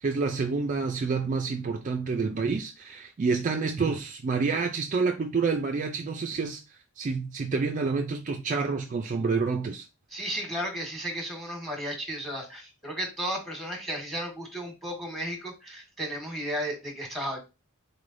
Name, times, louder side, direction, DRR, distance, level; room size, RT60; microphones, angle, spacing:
voice 1, 0.0-6.6 7.0-9.9, right 4 dB, 35° right, 0.3 m, -28 dB
voice 2, 10.1-17.4, equal, ahead, 1.2 m, -34 dB
4.1 x 3.2 x 2.5 m
head